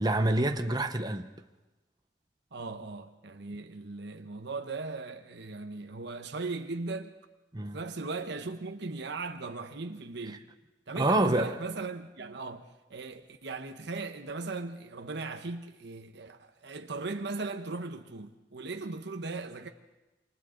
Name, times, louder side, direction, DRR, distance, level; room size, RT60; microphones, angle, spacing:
voice 1, 0.0-1.3 7.5-7.8 10.3-10.4 10.9-11.5, right 1 dB, 20° right, 0.8 m, -27 dB
voice 2, 2.5-7.1 7.6-10.4 10.9-12.6 12.9-19.7, right 3 dB, 65° right, 1.0 m, -38 dB
28.0 x 25.0 x 3.9 m
head